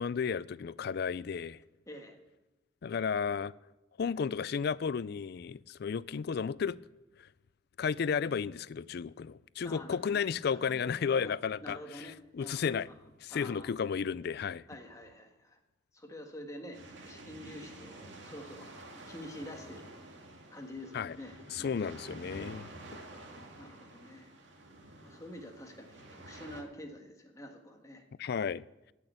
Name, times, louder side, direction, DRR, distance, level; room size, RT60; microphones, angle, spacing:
voice 1, 0.0-1.6 2.8-3.5 4.0-6.8 7.2-7.3 7.8-12.1 12.3-12.9 13.2-14.6 20.9-21.2 21.5-22.7 28.2-28.6, left 6 dB, 60° left, 0.4 m, -33 dB
voice 2, 1.9-2.2 9.6-10.2 10.5-11.3 11.6-12.8 13.3-13.7 14.7-15.6 15.9-16.8 17.1-20.0 20.5-21.8 23.6-24.3 25.0-28.0, left 1 dB, 20° left, 1.5 m, -47 dB
sound 1, 16.7-26.6, right 1 dB, 75° right, 2.4 m, -50 dB
17.5 x 6.4 x 8.0 m
head